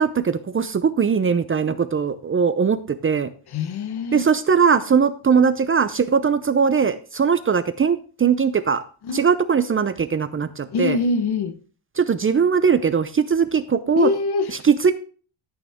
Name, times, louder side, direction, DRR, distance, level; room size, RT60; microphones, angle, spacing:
voice 1, 0.0-3.3 4.1-8.8 9.1-11.0 12.0-14.1 14.6-14.9, right 6 dB, 25° right, 0.6 m, -20 dB
voice 2, 3.5-4.3 9.0-9.3 10.7-11.6 13.9-14.6, left 4 dB, 50° left, 1.2 m, -24 dB
14.0 x 8.8 x 3.6 m
cardioid pair, 135°, 48 cm